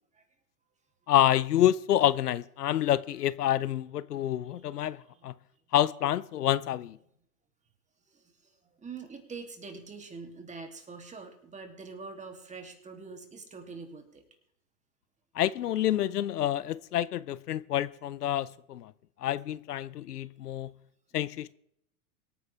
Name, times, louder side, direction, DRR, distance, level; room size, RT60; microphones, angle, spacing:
voice 1, 1.1-5.3 5.7-7.0 15.4-18.9 19.2-20.7 21.1-21.5, left 12 dB, 85° left, 0.7 m, -28 dB
voice 2, 4.8-5.3 8.1-14.2 15.7-15.8, right 4 dB, 15° right, 2.8 m, -45 dB
24.5 x 9.5 x 3.4 m
hypercardioid pair, 110°, 46 cm